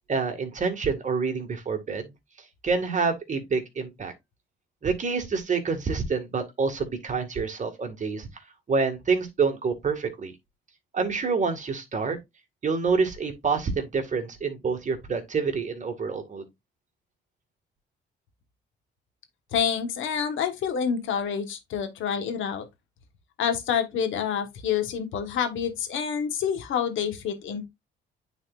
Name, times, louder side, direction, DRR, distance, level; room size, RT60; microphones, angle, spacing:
voice 1, 0.1-2.1 2.6-4.1 4.8-8.3 8.7-10.3 10.9-12.2 12.6-16.5, right 5 dB, 40° right, 1.8 m, -27 dB
voice 2, 19.5-22.6 23.4-27.7, left 7 dB, 80° left, 1.4 m, -28 dB
9.4 x 4.1 x 2.5 m
cardioid pair, 90°, 20 cm